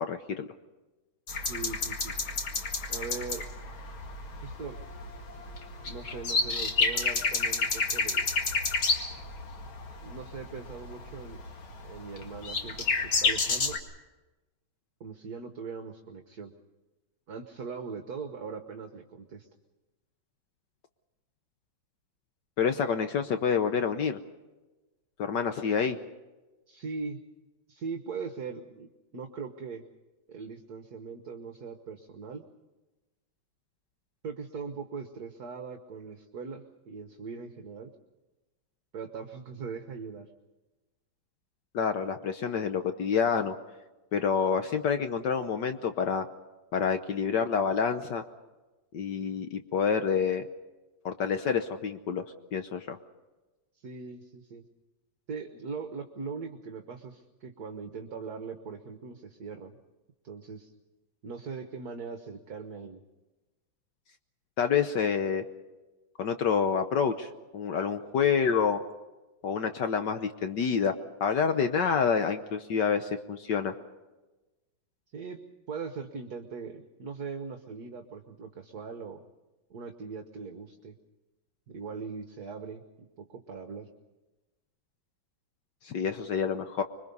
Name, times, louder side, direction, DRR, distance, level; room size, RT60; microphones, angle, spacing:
voice 1, 0.1-0.5 22.6-24.2 25.2-26.0 41.7-43.5 44.1-46.3 46.7-48.2 48.9-50.5 51.0-52.2 52.5-53.0 64.6-65.4 66.2-68.8 69.4-70.9 71.2-73.8 85.8-86.8, left 6 dB, 65° left, 8 dB, 1.5 m, -28 dB
sound 1, 1.3-13.8, left 4 dB, 85° left, 2.8 m, -30 dB
voice 2, 1.5-2.2 2.9-3.5 4.4-4.8 5.8-8.3 10.0-11.4 11.8-13.8 15.0-16.5 17.3-19.5 26.7-27.2 27.7-29.8 30.3-32.5 34.2-37.9 38.9-40.3 53.7-54.6 55.3-59.8 60.2-60.7 61.2-63.0 75.1-75.4 75.7-79.2 79.7-81.0 81.7-83.9, right 5 dB, 55° right, 5 dB, 1.6 m, -40 dB
26.0 x 23.0 x 5.4 m, 1.1 s
omnidirectional pair, 2.2 m